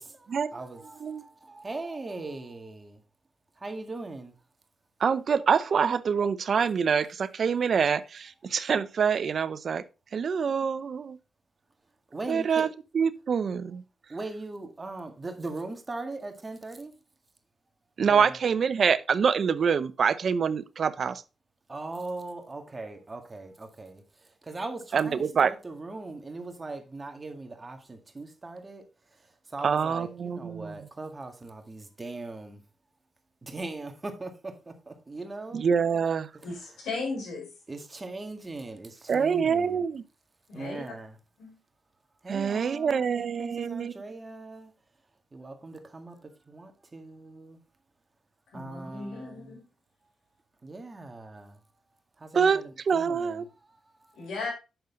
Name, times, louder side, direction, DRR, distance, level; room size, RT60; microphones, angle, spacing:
voice 1, 0.0-3.0 3.6-4.3 12.1-12.7 14.1-16.9 18.1-18.4 21.7-32.6 33.4-35.7 36.4-36.7 37.7-39.9 40.5-41.2 42.2-44.7 45.3-47.6 48.5-49.6 50.6-51.6 52.2-54.3, right 2 dB, 30° right, 1.9 m, -40 dB
voice 2, 5.0-9.8 10.1-11.2 12.3-12.7 12.9-13.8 18.0-21.2 24.9-25.5 29.6-30.7 35.5-36.3 39.1-40.0 42.3-43.9 52.3-52.6 52.9-53.4, right 6 dB, 60° right, 0.6 m, -25 dB
voice 3, 36.4-37.5 40.5-40.8 41.4-41.6 48.5-49.6 54.1-54.5, left 3 dB, 80° left, 4.4 m, -36 dB
8.0 x 6.6 x 3.8 m
cardioid pair, 70°, 0 cm